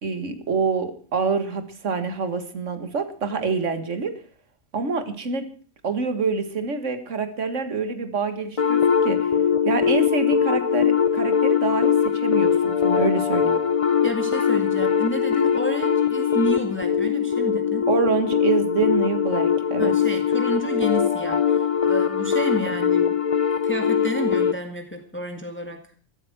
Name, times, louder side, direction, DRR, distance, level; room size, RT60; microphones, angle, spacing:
voice 1, 0.0-4.1 4.7-5.4 5.8-9.3 9.7-13.6 17.9-19.9, right 5 dB, 60° right, 9 dB, 2.1 m, -26 dB
sound 1, 8.6-24.6, left 7 dB, 35° left, 0.6 m, -21 dB
voice 2, 14.0-17.9 19.8-23.2 23.6-25.8, equal, 10° left, 5 dB, 1.9 m, -30 dB
14.0 x 12.5 x 6.1 m, 0.44 s
omnidirectional pair, 1.5 m